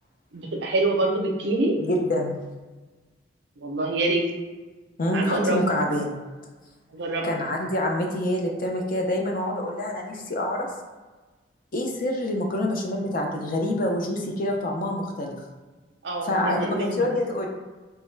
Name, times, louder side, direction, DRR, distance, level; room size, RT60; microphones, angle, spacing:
voice 1, 0.3-1.8 3.6-4.3 5.1-5.6 6.9-7.3 16.0-17.0, right 2 dB, 65° right, 1 dB, 0.5 m, -25 dB
voice 2, 1.8-2.4 5.0-6.2 7.2-10.7 11.7-15.4 16.2-17.5, left 1 dB, 50° left, 1 dB, 0.5 m, -26 dB
3.5 x 2.1 x 3.2 m, 1.3 s
head